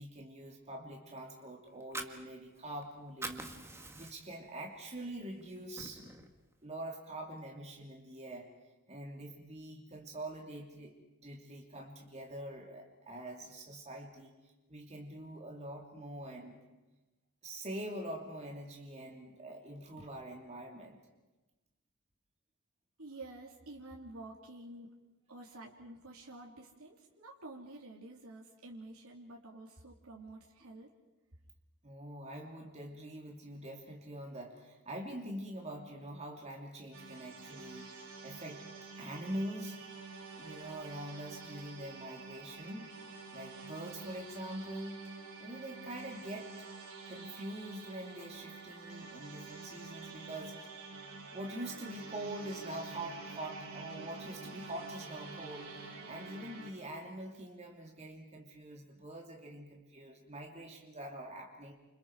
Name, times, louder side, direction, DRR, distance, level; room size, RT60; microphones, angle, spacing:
voice 1, 0.0-3.5 3.9-6.0 6.6-8.5 8.9-11.0 11.2-14.3 14.7-16.6 17.4-21.0 31.8-37.9 38.2-38.6 39.0-39.8 40.3-42.9 43.3-45.0 45.4-46.7 47.0-50.5 51.3-61.7, right 1 dB, 30° right, 0 dB, 3.1 m, -44 dB
Fire, 1.7-2.8 3.1-4.4 4.9-5.0 5.4-6.4, right 2 dB, 10° right, 1.7 m, -44 dB
voice 2, 23.0-24.9 25.3-30.9, right 2 dB, 75° right, -2 dB, 3.1 m, -50 dB
sound 1, 36.9-56.7, right 4 dB, 60° right, 7.4 m, -48 dB
sound 2, 41.6-41.8 42.7-42.9 44.0-44.2 45.0-45.2 45.8-45.9 46.4-46.6 47.6-47.7 48.2-48.4 49.1-49.2 49.4-49.6 50.2-50.3 50.6-50.9, left 2 dB, 50° left, 6.9 m, -65 dB
30.0 x 28.0 x 4.9 m, 1.1 s
head